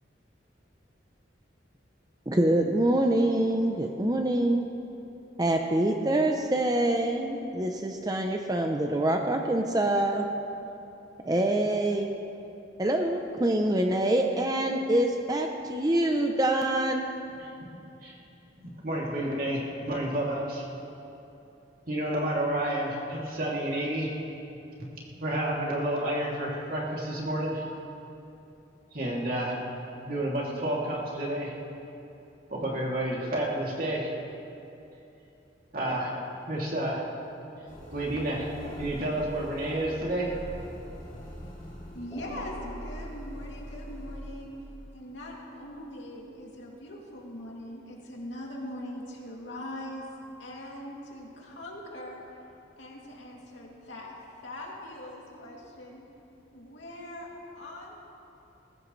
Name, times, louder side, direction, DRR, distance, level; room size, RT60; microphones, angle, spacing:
voice 1, 2.3-4.7 5.4-10.3 11.2-12.1 12.8-17.1, right 1 dB, 20° right, 3 dB, 0.6 m, -25 dB
voice 2, 18.6-20.6 21.9-24.2 25.2-27.7 28.9-29.5 30.0-31.5 32.5-34.1 35.7-36.1 36.5-37.0 37.9-38.5 38.8-40.3, right 1 dB, 50° right, -4 dB, 2.8 m, -30 dB
sound 1, 37.7-45.6, equal, 25° left, 2.9 m, -42 dB
voice 3, 41.9-44.5 44.9-50.1 50.4-52.2 52.8-54.1 54.4-56.0 56.5-57.3 57.5-58.0, left 1 dB, 85° left, -3 dB, 2.7 m, -41 dB
20.0 x 15.0 x 3.2 m, 2.9 s
head